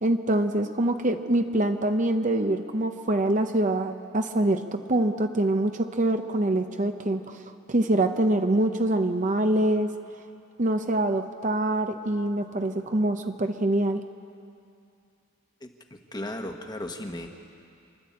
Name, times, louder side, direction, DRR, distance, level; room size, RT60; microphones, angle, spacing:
voice 1, 0.0-4.6 4.9-7.4 7.7-9.9 10.6-14.0, right 1 dB, 35° right, 7 dB, 0.7 m, -24 dB
voice 2, 15.6-17.3, left 1 dB, 20° left, 4 dB, 1.2 m, -36 dB
27.5 x 12.0 x 8.5 m, 2.5 s
head